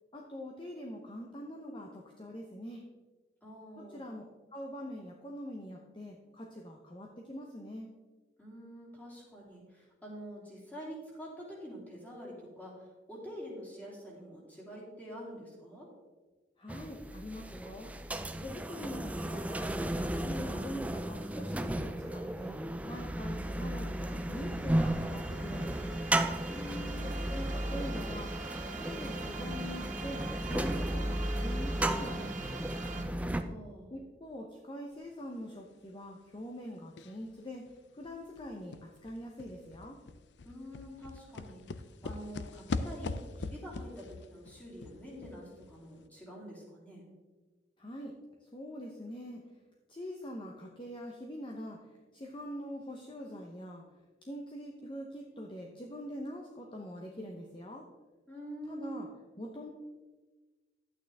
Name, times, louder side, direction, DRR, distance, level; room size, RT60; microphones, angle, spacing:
voice 1, 0.1-2.8 3.8-4.2 4.5-7.9 16.6-17.9 18.4-19.7 20.0-22.6 22.8-26.0 27.0-30.2 30.5-32.6 33.9-37.6 37.9-38.7 39.0-40.0 47.8-48.1 48.4-49.4 49.9-51.8 52.1-53.8 54.3-57.9 58.7-59.1 59.4-59.7, equal, 30° left, 0 dB, 0.9 m, -44 dB
voice 2, 3.4-4.1 8.4-15.9 26.5-27.2 33.2-33.9 40.4-41.6 42.0-47.0 58.3-59.1, equal, 10° left, -5 dB, 3.0 m, -46 dB
sound 1, 16.7-33.4, right 1 dB, 10° right, 0.4 m, -34 dB
sound 2, 23.4-33.0, right 4 dB, 45° right, 1.0 m, -46 dB
sound 3, 37.0-37.3 37.7-37.8 38.0-45.8 46.0-46.1, left 3 dB, 90° left, 0.5 m, -41 dB
11.5 x 8.9 x 3.5 m, 1.3 s
head